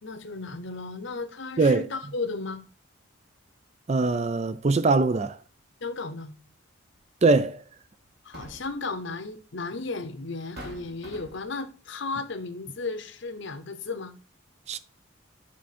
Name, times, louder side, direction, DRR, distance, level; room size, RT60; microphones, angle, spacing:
voice 1, 0.0-2.6 5.8-6.3 8.2-14.2, left 3 dB, 55° left, 0.8 m, -34 dB
voice 2, 3.9-5.4 7.2-7.6 14.7-14.8, right 3 dB, 30° right, 0.4 m, -22 dB
sound 1, 6.9-7.1 8.1-8.9 9.9-10.0 10.6-11.6, equal, 50° right, 1.6 m, -44 dB
8.6 x 3.7 x 4.2 m
head